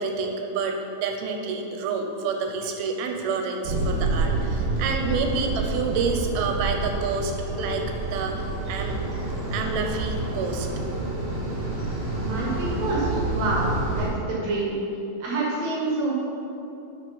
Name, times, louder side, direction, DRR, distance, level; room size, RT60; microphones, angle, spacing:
voice 1, 0.0-7.3 7.6-7.8 8.1-8.4 8.7-9.0 9.5-10.7, right 4 dB, 90° right, 3 dB, 2.7 m, -28 dB
sound 1, 3.6-14.1, right 2 dB, 45° right, 1.4 m, -28 dB
voice 2, 12.1-13.7 13.9-14.8 15.2-16.1, right 2 dB, 65° right, -4 dB, 1.8 m, -27 dB
7.4 x 5.6 x 5.5 m, 2.9 s
omnidirectional pair, 4.3 m